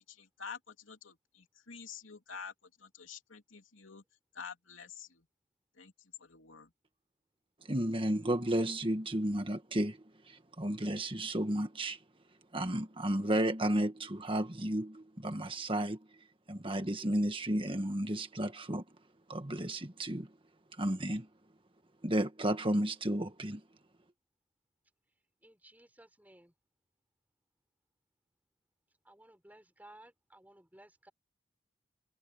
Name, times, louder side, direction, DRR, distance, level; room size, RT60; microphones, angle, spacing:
voice 1, 0.0-2.5 2.8-4.0 4.3-5.2 5.8-5.9 6.2-6.7, left 6 dB, 85° left, 3.0 m, -48 dB
voice 2, 7.6-12.0 12.5-16.2 16.5-18.8 19.3-20.3 20.8-21.3 22.0-23.6, right 1 dB, 25° right, 1.6 m, -33 dB
voice 3, 25.4-26.5 29.0-31.1, right 1 dB, 10° right, 3.8 m, -58 dB
head